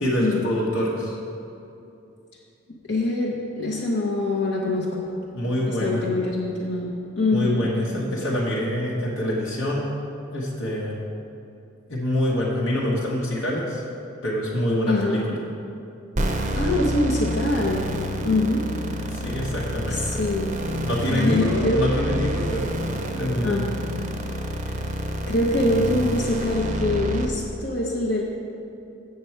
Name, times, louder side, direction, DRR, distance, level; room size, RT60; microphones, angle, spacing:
voice 1, 0.0-1.2 5.3-6.1 7.3-9.9 10.3-11.0 11.9-13.8 14.2-15.4 19.1-20.3 20.8-22.7 23.1-23.7, equal, 80° left, -5 dB, 1.2 m, -26 dB
voice 2, 2.9-5.1 5.7-7.7 14.9-15.3 16.5-17.8 18.2-18.7 19.9-20.6 21.1-21.8 23.4-23.8 24.6-24.7 25.3-28.2, left 2 dB, 60° left, -4 dB, 0.8 m, -24 dB
sound 1, 16.2-27.3, right 1 dB, 35° right, 0.6 m, -28 dB
7.6 x 6.9 x 4.5 m, 2.7 s
head